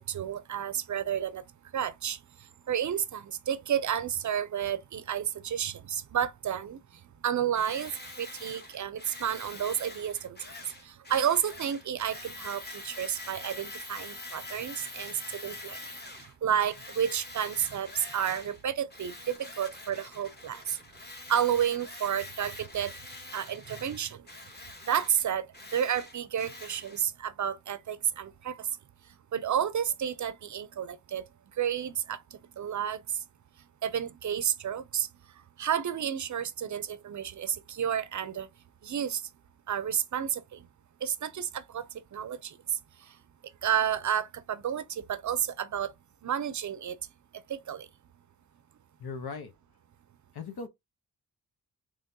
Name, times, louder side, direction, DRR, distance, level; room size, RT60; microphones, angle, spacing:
voice 1, 0.0-1.4 1.7-2.2 2.7-6.8 7.2-7.9 8.2-10.4 10.9-15.8 16.4-20.8 21.3-22.9 23.3-24.2 24.9-25.5 25.7-28.7 29.3-31.2 31.6-32.2 32.6-33.0 33.8-35.1 35.6-38.5 38.8-39.2 39.7-40.6 41.0-41.8 42.1-42.6 43.6-45.9 46.2-47.0 47.5-47.9, right 9 dB, 50° right, 0.5 m, -31 dB
Tools, 7.5-16.3 16.7-18.6 18.9-27.0, left 2 dB, 25° left, 1.3 m, -45 dB
voice 2, 49.0-49.5 50.3-50.7, left 4 dB, 80° left, 1.0 m, -38 dB
3.6 x 3.3 x 2.7 m
wide cardioid pair, 135°, 38 cm